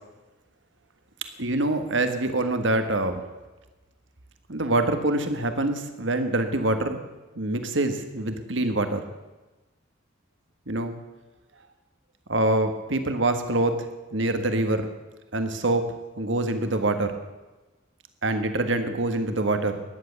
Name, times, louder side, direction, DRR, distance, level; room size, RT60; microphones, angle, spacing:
voice 1, 1.4-3.2 4.5-7.0 7.3-9.0 10.7-11.0 12.3-13.7 14.1-14.9 15.3-15.9 16.2-17.2 18.2-19.8, right 2 dB, 65° right, 7 dB, 1.6 m, -25 dB
14.0 x 10.5 x 8.2 m, 1.1 s
head